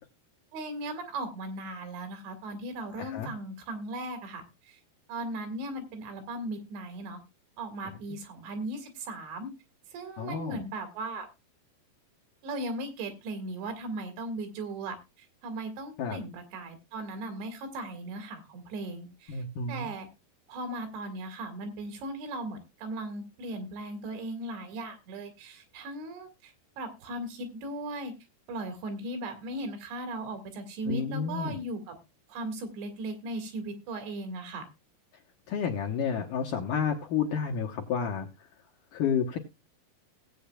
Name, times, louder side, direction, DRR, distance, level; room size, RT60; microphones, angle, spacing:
voice 1, 0.5-4.8 5.1-7.2 7.6-9.5 9.9-11.3 12.4-20.1 20.5-28.1 28.5-32.0 32.3-34.7, right 2 dB, 85° right, 7 dB, 4.2 m, -37 dB
voice 2, 3.0-3.3 10.2-10.6 16.0-16.2 19.3-19.9 30.9-31.6 35.5-38.3 38.9-39.4, left 6 dB, 75° left, 2 dB, 2.0 m, -30 dB
18.0 x 8.5 x 2.3 m, 0.24 s
omnidirectional pair, 4.9 m